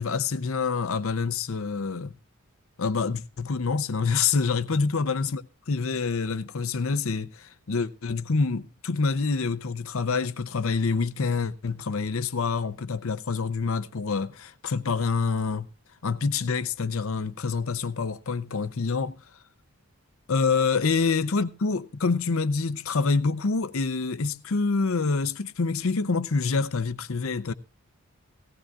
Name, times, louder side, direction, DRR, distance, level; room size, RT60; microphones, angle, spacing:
voice 1, 0.0-2.1 2.8-5.4 5.7-15.7 16.0-19.2 20.3-27.5, left 4 dB, 65° left, 0.7 m, -26 dB
18.0 x 15.0 x 2.4 m
head